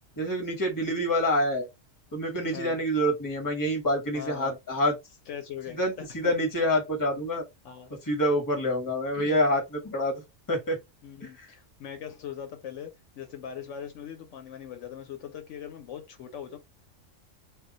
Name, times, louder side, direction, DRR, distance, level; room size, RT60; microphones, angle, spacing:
voice 1, 0.2-1.7 2.1-4.9 5.7-7.4 8.0-10.2 10.5-10.8 11.2-11.5, equal, 20° left, 0.8 m, -27 dB
voice 2, 4.1-4.6 5.3-6.3 7.6-8.0 9.1-9.4 11.0-16.6, left 8 dB, 75° left, 0.9 m, -41 dB
2.3 x 2.2 x 3.7 m
omnidirectional pair, 1.3 m